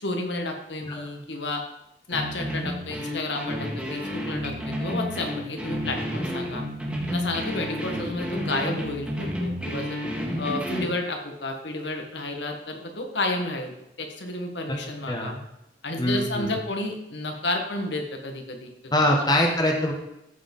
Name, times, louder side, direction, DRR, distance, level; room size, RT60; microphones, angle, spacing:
voice 1, 0.0-1.6 2.1-6.6 7.1-10.0 10.4-15.3 15.8-18.7 19.0-19.2, left 2 dB, 80° left, 3 dB, 1.7 m, -31 dB
sound 1, 2.1-11.0, equal, 5° right, 2.0 m, -31 dB
voice 2, 16.0-16.5 18.9-19.9, left 1 dB, 20° left, 1 dB, 1.4 m, -23 dB
14.0 x 4.9 x 5.5 m, 0.87 s
head